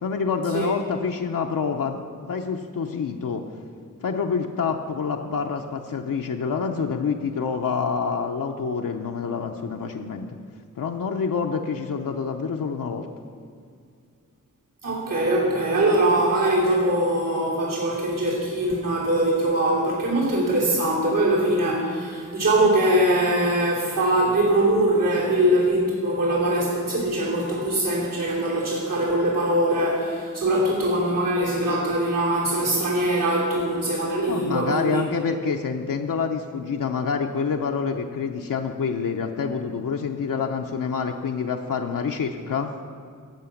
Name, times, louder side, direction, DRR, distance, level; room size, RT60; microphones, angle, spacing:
voice 1, 0.0-3.4 4.0-10.3 10.8-13.1 34.3-42.8, left 5 dB, 90° left, 2 dB, 0.7 m, -27 dB
voice 2, 14.8-35.0, right 1 dB, 80° right, -5 dB, 3.2 m, -22 dB
16.5 x 5.9 x 7.1 m, 2.2 s
wide cardioid pair, 100°, 32 cm